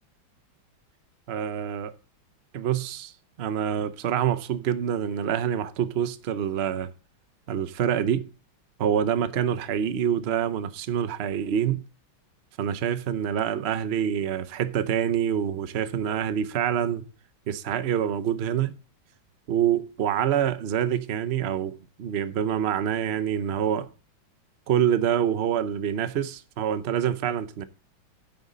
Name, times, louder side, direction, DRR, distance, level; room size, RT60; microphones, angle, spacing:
voice 1, 1.3-1.9 2.5-3.1 3.4-6.9 7.5-8.3 8.8-11.8 12.6-17.0 17.5-18.7 19.5-23.9 24.7-27.6, right 9 dB, 65° right, 0.6 m, -26 dB
9.4 x 9.3 x 3.9 m
omnidirectional pair, 2.2 m